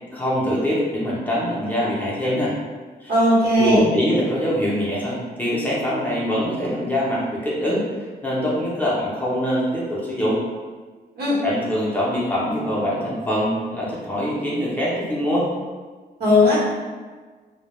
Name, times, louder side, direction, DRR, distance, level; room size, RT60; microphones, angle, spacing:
voice 1, 0.1-2.6 3.0-3.1 3.6-7.8 8.2-10.4 11.4-15.5, equal, 10° left, -7 dB, 0.5 m, -23 dB
voice 2, 3.1-3.9 11.2-11.4 16.2-16.6, left 1 dB, 65° right, -6 dB, 0.9 m, -17 dB
2.1 x 2.1 x 2.9 m, 1.4 s
wide cardioid pair, 135°, 17 cm